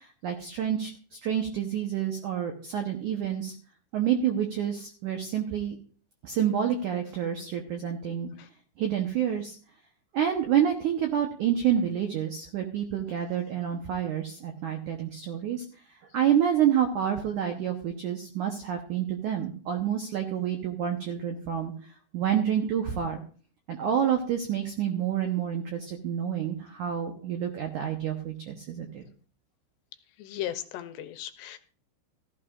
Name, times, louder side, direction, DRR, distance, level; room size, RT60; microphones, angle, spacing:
voice 1, 0.0-3.5 3.9-5.8 6.2-8.3 8.8-9.5 10.1-15.6 16.1-21.7 22.1-23.2 23.7-29.0, right 9 dB, 90° right, 4 dB, 1.7 m, -28 dB
voice 2, 30.2-31.6, left 12 dB, 80° left, 9 dB, 2.7 m, -36 dB
15.0 x 13.5 x 2.4 m, 0.42 s
omnidirectional pair, 5.0 m